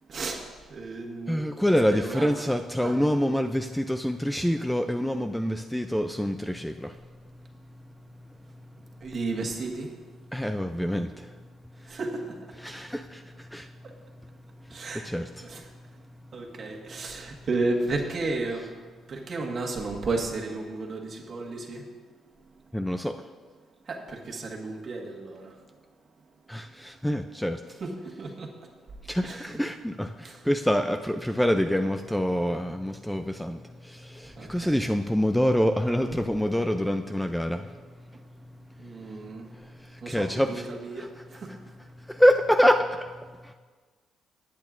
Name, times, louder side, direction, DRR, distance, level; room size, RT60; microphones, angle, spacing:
voice 1, 0.1-0.4 0.7-1.5 1.9-2.3 2.8-2.9 9.0-9.9 11.8-12.4 14.7-15.1 15.4-15.6 16.3-18.7 19.1-21.9 23.8-25.6 27.8-28.5 29.2-29.5 30.2-30.4 34.4-34.8 38.8-39.5 40.0-41.5, right 3 dB, 40° right, 1 dB, 1.5 m, -33 dB
voice 2, 1.3-7.0 10.3-11.4 11.8-11.9 12.6-13.7 14.7-15.5 22.7-23.2 26.5-27.6 29.0-37.7 39.1-39.2 39.5-40.7 40.9-41.6 42.0-43.1 43.4-43.5, equal, 5° left, 7 dB, 0.3 m, -26 dB
19.0 x 8.6 x 2.5 m, 1.5 s
cardioid pair, 125°, 0 cm